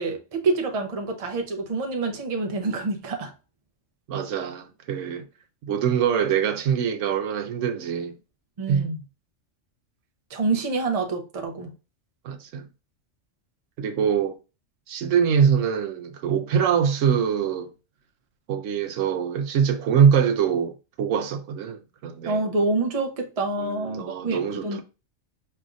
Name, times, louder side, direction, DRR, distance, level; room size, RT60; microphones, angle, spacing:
voice 1, 0.0-3.3 8.6-9.0 10.3-11.7 22.2-24.8, right 3 dB, 35° right, 0.7 m, -27 dB
voice 2, 4.1-5.3 5.6-8.2 8.7-8.9 12.2-12.7 13.8-14.4 14.9-17.7 18.5-22.4 23.6-24.8, right 7 dB, 75° right, 0.9 m, -23 dB
5.0 x 3.3 x 2.4 m
omnidirectional pair, 1.3 m